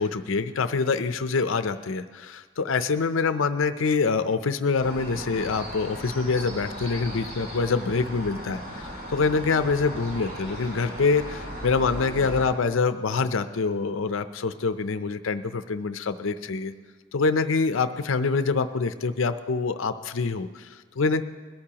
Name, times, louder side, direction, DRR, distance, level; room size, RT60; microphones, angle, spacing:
voice 1, 0.0-16.7 17.1-21.2, left 4 dB, 75° left, 11 dB, 0.5 m, -25 dB
sound 1, 4.8-12.5, equal, 45° right, 3.2 m, -37 dB
21.0 x 13.5 x 2.9 m, 1.4 s
head